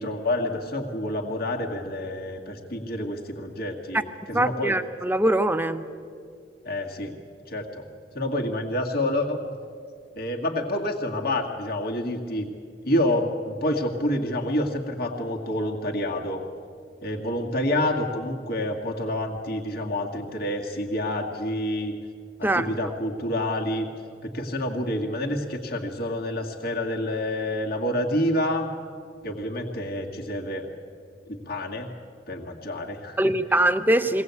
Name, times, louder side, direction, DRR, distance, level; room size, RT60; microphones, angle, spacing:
voice 1, 0.0-4.7 6.7-7.1 7.5-7.9 8.1-9.4 10.2-12.5 12.8-16.4 17.0-21.9 22.4-23.9 24.2-28.7 29.2-30.7 31.3-31.9 32.3-33.2, left 1 dB, 55° left, 0 dB, 2.1 m, -28 dB
voice 2, 4.3-5.9 22.4-22.7 33.2-34.2, right 1 dB, 10° right, 10 dB, 0.7 m, -22 dB
22.5 x 17.5 x 8.3 m, 2.2 s
head